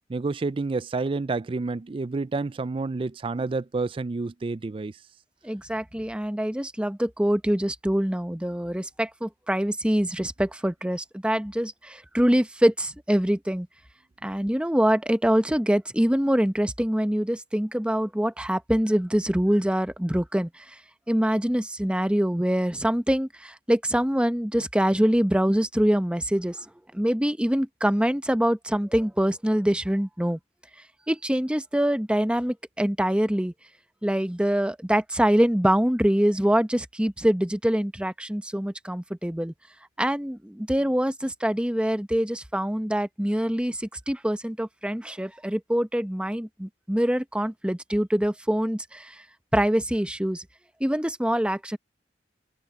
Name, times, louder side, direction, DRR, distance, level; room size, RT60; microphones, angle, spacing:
voice 1, 0.1-4.9, right 3 dB, 30° right, 0.4 m, -29 dB
voice 2, 5.4-13.7 14.2-20.8 21.1-30.4 31.1-33.5 34.0-39.5 40.0-49.2 49.5-50.4 50.8-51.8, equal, 5° right, 0.8 m, -24 dB
head